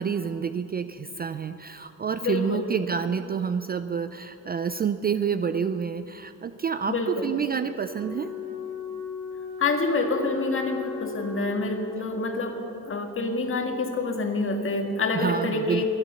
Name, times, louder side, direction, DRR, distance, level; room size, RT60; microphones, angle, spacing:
voice 1, 0.0-8.3 15.1-15.8, right 6 dB, 30° right, 11 dB, 0.3 m, -28 dB
voice 2, 2.2-2.7 6.9-7.3 9.6-12.6 12.9-15.9, left 3 dB, 40° left, 4 dB, 1.8 m, -27 dB
Wind instrument woodwind instrument, 7.9-12.3, left 6 dB, 65° right, 2.5 m, -37 dB
22.5 x 9.0 x 6.9 m, 3.0 s
cardioid pair, 125°, 33 cm